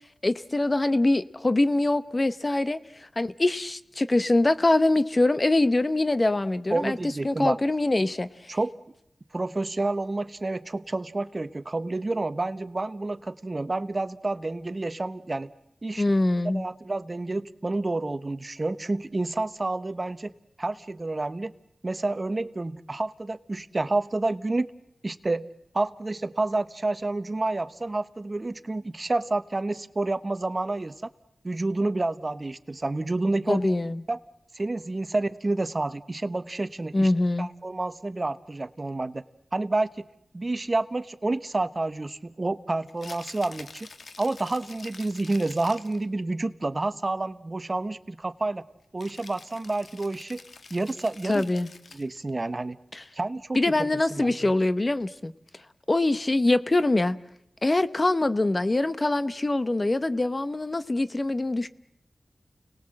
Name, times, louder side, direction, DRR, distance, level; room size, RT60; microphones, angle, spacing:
voice 1, 0.2-2.8 3.2-7.0 7.2-8.6 16.0-16.6 33.5-34.0 36.9-37.5 51.3-51.7 52.9-53.0 53.5-55.3 55.9-57.2 57.6-61.7, left 2 dB, 35° left, 0.9 m, -24 dB
voice 2, 6.7-7.6 8.5-8.7 9.3-15.5 15.8-16.0 16.4-20.3 20.6-21.5 21.8-24.7 25.0-25.5 25.7-30.9 31.4-33.7 34.1-34.2 34.5-37.1 37.4-39.2 39.5-40.1 40.3-43.9 44.2-48.6 48.9-50.4 50.7-51.5 51.9-52.8 53.1-53.6 54.1-54.5, right 2 dB, 35° right, 1.0 m, -29 dB
Rattle (instrument), 42.9-46.1 49.0-52.2, left 3 dB, 70° left, 1.4 m, -47 dB
30.0 x 19.5 x 7.7 m
wide cardioid pair, 65°, 0 cm